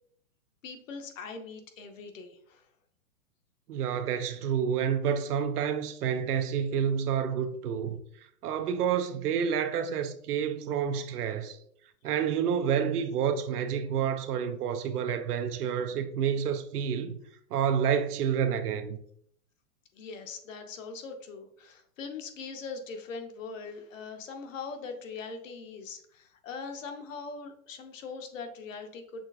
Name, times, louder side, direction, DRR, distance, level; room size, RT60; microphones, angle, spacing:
voice 1, 0.6-2.7 19.9-29.2, left 4 dB, 60° left, 0.8 m, -41 dB
voice 2, 3.7-11.6 12.0-17.2 17.5-19.0, right 8 dB, 90° right, 0.6 m, -29 dB
6.3 x 3.3 x 2.4 m
hypercardioid pair, 170°, 45 cm